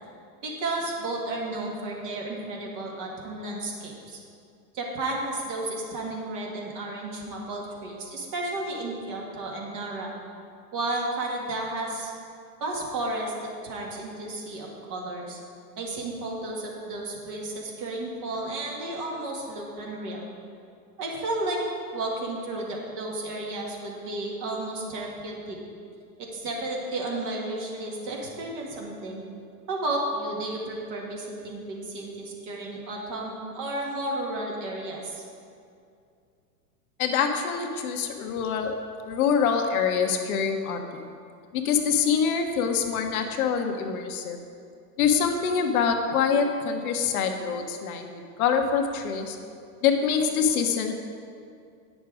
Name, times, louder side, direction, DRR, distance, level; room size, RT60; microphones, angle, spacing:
voice 1, 0.4-4.2 4.7-10.1 10.7-12.1 12.6-15.4 15.8-20.3 21.0-21.6 21.9-25.6 26.2-29.3 29.7-35.2, right 2 dB, 40° right, -1 dB, 2.0 m, -32 dB
voice 2, 37.0-38.7 39.1-41.1 41.5-44.4 45.0-49.4 49.8-50.9, left 6 dB, 60° left, 4 dB, 1.1 m, -25 dB
9.2 x 6.3 x 4.9 m, 2.4 s
hypercardioid pair, 115°, 49 cm